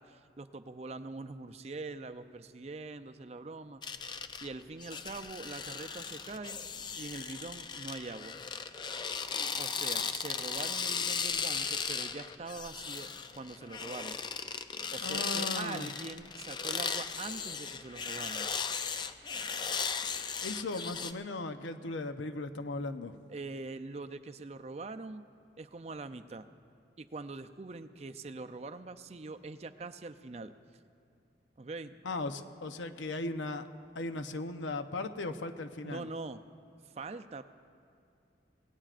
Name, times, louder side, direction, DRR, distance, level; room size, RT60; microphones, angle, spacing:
voice 1, 0.0-3.8 4.4-6.6 7.0-8.4 9.6-13.1 13.4-14.2 14.9-18.5 23.3-25.2 25.6-26.5 27.0-30.5 31.6-31.9 35.8-36.4 36.8-37.4, right 3 dB, 35° right, 9 dB, 0.4 m, -43 dB
sound 1, 3.8-21.1, left 6 dB, 25° left, 0.4 m, -37 dB
voice 2, 15.0-15.9 20.4-23.2 32.0-33.6 33.9-36.1, left 2 dB, 90° left, 8 dB, 0.8 m, -37 dB
26.5 x 18.0 x 2.5 m, 2.4 s
head